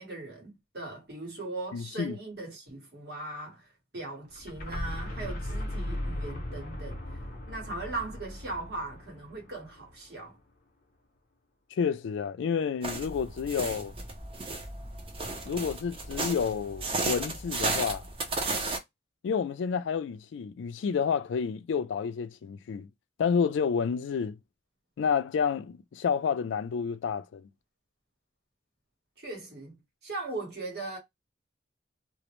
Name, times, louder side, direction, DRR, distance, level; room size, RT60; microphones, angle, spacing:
voice 1, 0.0-3.7 3.9-7.0 7.5-10.4 29.2-29.8 30.0-31.0, right 2 dB, 65° right, 1.2 m, -39 dB
voice 2, 1.7-2.2 11.7-13.9 15.5-18.1 19.2-22.9 23.2-24.4 25.0-27.5, left 6 dB, 90° left, 0.3 m, -30 dB
sound 1, 4.3-10.1, left 1 dB, 50° left, 0.6 m, -37 dB
sound 2, 12.8-18.8, right 2 dB, 30° right, 0.5 m, -34 dB
2.4 x 2.0 x 3.0 m
head